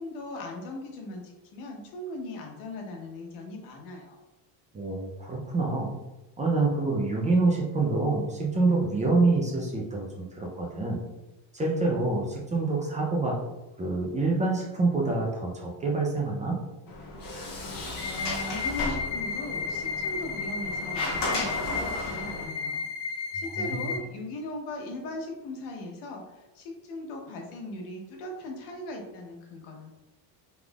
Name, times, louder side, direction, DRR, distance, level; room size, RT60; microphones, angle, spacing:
voice 1, 0.0-4.2 17.7-29.9, left 2 dB, 80° left, 1 dB, 1.3 m, -39 dB
voice 2, 4.7-5.9 6.4-11.0 11.5-13.4 13.8-16.6 23.5-23.9, right 3 dB, 15° right, -2 dB, 0.5 m, -26 dB
Sliding door, 16.9-22.4, left 2 dB, 45° left, 1.3 m, -35 dB
sound 1, 18.0-24.0, left 5 dB, 60° left, 0.9 m, -33 dB
5.4 x 3.5 x 2.4 m, 1.0 s
cardioid pair, 150°, 48 cm